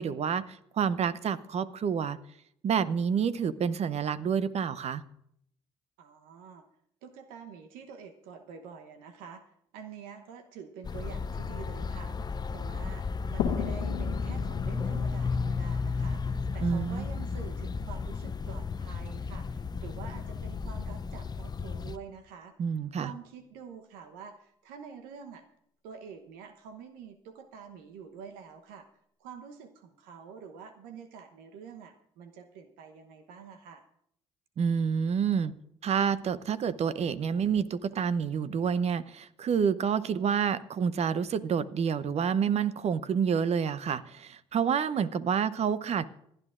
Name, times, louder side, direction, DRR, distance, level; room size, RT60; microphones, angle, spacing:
voice 1, 0.0-2.2 2.6-5.0 16.6-17.1 22.6-23.1 34.6-35.5 35.8-46.0, right 7 dB, 45° right, 0.7 m, -28 dB
voice 2, 6.0-6.7 7.0-9.4 9.7-12.2 12.5-22.5 23.0-25.4 25.8-28.9 29.2-33.8, right 6 dB, 75° right, 1.0 m, -47 dB
sound 1, 10.8-22.0, left 4 dB, 30° left, 0.5 m, -33 dB
sound 2, 13.4-16.9, left 9 dB, 80° left, 1.2 m, -36 dB
26.5 x 10.0 x 2.5 m
hypercardioid pair, 60°, 15 cm